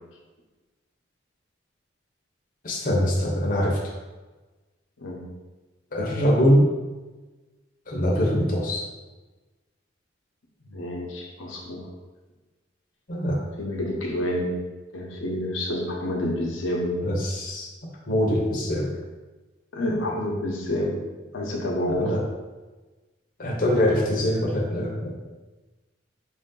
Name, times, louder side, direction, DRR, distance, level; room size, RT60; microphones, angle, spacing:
voice 1, 2.6-4.0 5.9-6.7 7.9-8.9 13.1-13.4 17.0-17.7 18.1-19.0 21.9-22.2 23.4-25.2, equal, 45° left, -2 dB, 0.7 m, -23 dB
voice 2, 10.7-11.9 13.6-14.6 14.9-17.0 19.7-21.0 21.3-22.1, left 1 dB, 85° left, -1 dB, 0.8 m, -28 dB
4.8 x 2.6 x 3.7 m, 1.2 s
head